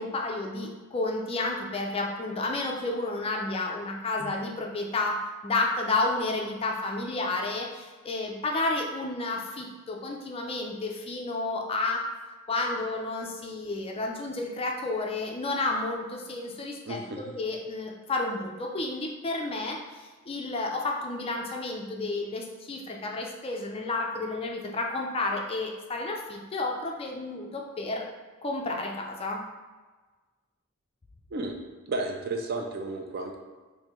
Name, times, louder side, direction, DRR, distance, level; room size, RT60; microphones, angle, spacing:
voice 1, 0.0-5.2 5.4-12.0 12.5-28.1 28.4-29.4, left 2 dB, 25° left, 0 dB, 0.4 m, -31 dB
voice 2, 16.9-17.3 31.3-31.5 31.9-33.4, right 2 dB, 50° right, 3 dB, 0.4 m, -33 dB
3.1 x 2.7 x 3.6 m, 1.3 s
head